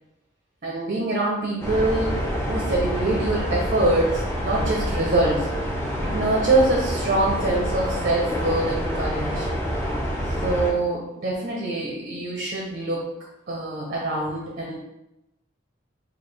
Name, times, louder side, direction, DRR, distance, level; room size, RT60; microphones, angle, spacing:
voice 1, 0.6-5.6 6.0-9.5 10.3-13.1 13.5-14.8, right 2 dB, 40° right, -2 dB, 0.6 m, -24 dB
sound 1, 1.6-10.7, equal, 10° left, 0.6 m, -27 dB
4.6 x 2.4 x 3.2 m, 0.90 s
head